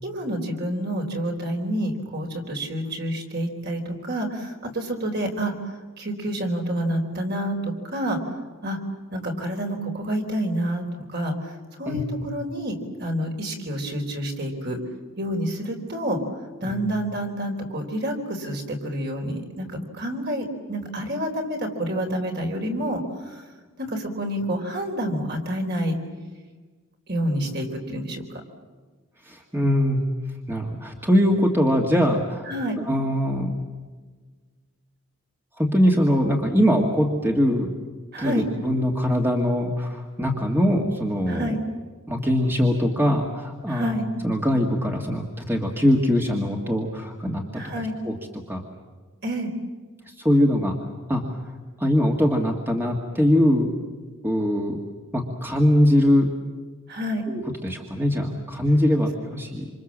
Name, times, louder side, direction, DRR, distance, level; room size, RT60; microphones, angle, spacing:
voice 1, 0.0-8.2 8.6-8.8 9.1-14.8 15.2-16.2 16.6-23.4 23.8-26.0 27.1-28.4 32.5-32.8 38.1-38.4 41.3-41.6 43.7-44.0 47.5-47.9 49.2-49.5 56.9-57.2, equal, 45° right, 3 dB, 4.1 m, -28 dB
voice 2, 29.2-30.0 30.5-32.5 32.9-33.5 35.6-37.7 38.2-41.6 42.1-44.0 44.2-47.6 48.0-48.1 48.5-48.6 50.1-50.8 51.1-51.2 51.8-53.7 54.2-54.8 55.1-56.3 57.3-59.7, equal, 10° right, 1 dB, 2.0 m, -22 dB
27.0 x 27.0 x 7.5 m, 1.4 s
head